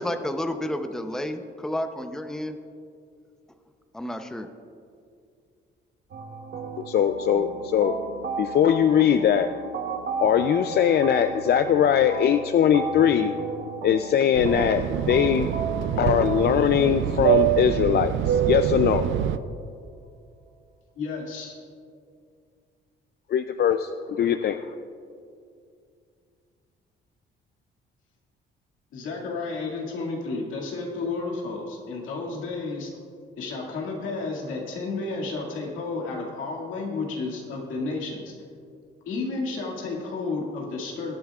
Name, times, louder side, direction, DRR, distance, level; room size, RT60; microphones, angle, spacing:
voice 1, 0.0-2.5 3.9-4.5, left 1 dB, 5° left, 7 dB, 0.7 m, -30 dB
sound 1, 6.1-19.1, right 4 dB, 60° right, 1.0 m, -35 dB
voice 2, 6.9-8.0 8.4-9.5 10.2-13.3 13.8-15.5 16.0-19.0 23.3-24.7, left 9 dB, 55° left, 9 dB, 0.4 m, -21 dB
Fixed-wing aircraft airplane, 14.3-19.4, right 11 dB, 75° right, 0.5 m, -25 dB
voice 3, 21.0-21.5 28.9-32.9 33.4-38.3 39.1-41.1, left 3 dB, 85° left, -1 dB, 2.1 m, -32 dB
20.5 x 9.3 x 2.4 m, 2.3 s
cardioid pair, 90°, 20 cm